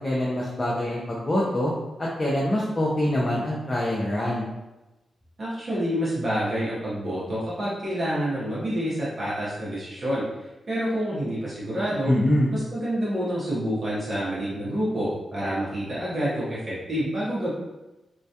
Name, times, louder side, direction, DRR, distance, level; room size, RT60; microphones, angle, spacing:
voice 1, 0.0-1.7 2.0-4.5 12.0-12.5, left 1 dB, 20° left, -6 dB, 0.4 m, -24 dB
voice 2, 5.4-10.2 10.7-12.1 12.5-17.5, equal, 35° right, -9 dB, 0.7 m, -28 dB
2.2 x 2.2 x 2.7 m, 1.0 s
wide cardioid pair, 150°, 0 cm